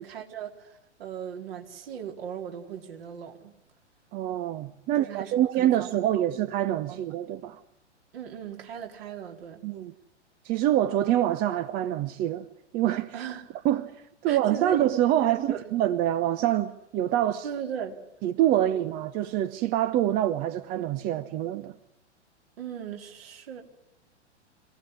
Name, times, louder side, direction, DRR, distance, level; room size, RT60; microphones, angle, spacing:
voice 1, 0.0-3.6 5.0-6.3 6.9-7.0 8.1-9.6 13.1-13.7 14.3-14.9 15.2-15.7 17.4-18.0 18.5-18.8 22.6-23.6, right 8 dB, 55° right, 4.3 m, -38 dB
voice 2, 4.1-7.6 9.6-9.9 10.4-12.5 12.7-13.1 13.6-17.5 18.2-21.7, right 12 dB, 25° right, 0.8 m, -26 dB
26.0 x 17.0 x 9.8 m
figure-of-eight pair, 105°, 35 cm